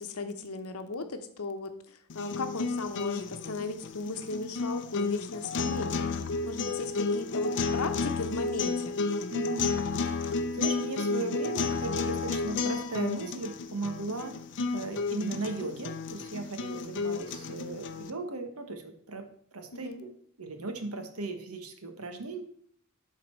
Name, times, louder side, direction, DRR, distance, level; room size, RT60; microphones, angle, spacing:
voice 1, 0.0-6.2 6.4-9.0 19.7-20.0, left 3 dB, 85° left, 8 dB, 0.9 m, -36 dB
sound 1, 2.1-18.1, left 4 dB, 55° left, 0.6 m, -32 dB
voice 2, 9.3-9.8 10.0-14.4 14.7-19.3 19.5-20.1 20.4-22.4, right 3 dB, 85° right, 6 dB, 1.2 m, -37 dB
11.5 x 4.1 x 4.5 m, 0.62 s
head